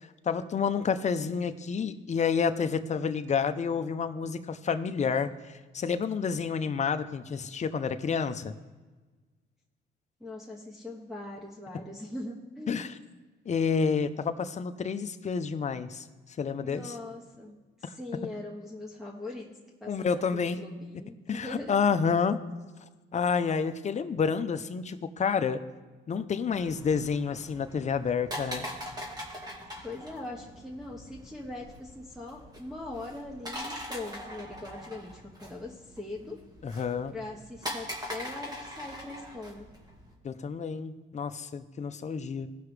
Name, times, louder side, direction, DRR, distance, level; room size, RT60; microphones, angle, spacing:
voice 1, 0.2-8.5 12.7-12.9 13.5-16.0 16.4-17.0 17.8-17.9 19.9-20.6 21.3-22.4 23.1-25.6 26.1-28.7 36.6-37.1 40.2-42.5, left 6 dB, 35° left, 11 dB, 0.6 m, -29 dB
voice 2, 10.2-12.9 16.6-19.5 19.8-21.7 29.8-36.4 37.1-39.7, left 2 dB, ahead, -5 dB, 1.4 m, -41 dB
sound 1, 26.5-40.1, equal, 20° right, 2.3 m, -42 dB
17.5 x 5.8 x 3.3 m, 1.3 s
cardioid pair, 90°, 20 cm